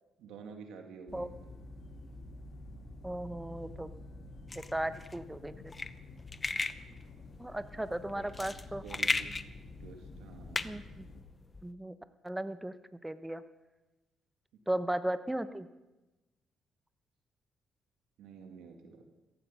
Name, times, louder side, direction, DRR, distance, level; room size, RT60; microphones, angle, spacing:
voice 1, 0.2-1.6 8.1-8.3 8.8-9.3 9.8-10.7 18.2-19.0, right 5 dB, 90° right, 4 dB, 2.2 m, -49 dB
sound 1, 1.1-11.2, left 2 dB, 55° left, 2.4 m, -49 dB
voice 2, 3.0-3.9 4.7-5.7 7.4-8.8 10.6-11.1 11.6-11.9 12.2-12.7 13.0-13.4 14.7-15.7, right 1 dB, 10° right, 11 dB, 1.0 m, -36 dB
sound 2, 4.5-11.7, left 3 dB, 25° left, 0.7 m, -37 dB
16.0 x 15.5 x 5.6 m, 1.0 s
cardioid pair, 90°, 0 cm